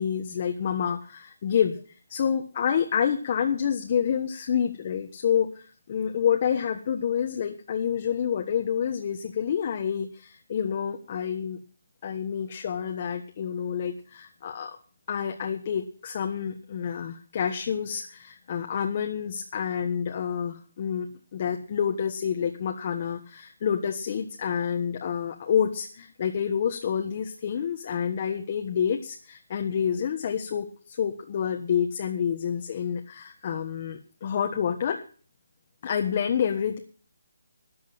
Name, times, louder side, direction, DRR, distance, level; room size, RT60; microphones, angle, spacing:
voice 1, 0.0-1.8 2.1-11.6 12.0-14.8 15.1-21.1 21.3-35.0 35.8-36.8, left 8 dB, 35° left, 3 dB, 1.3 m, -28 dB
13.5 x 8.6 x 7.5 m, 0.41 s
hypercardioid pair, 170°, 0 cm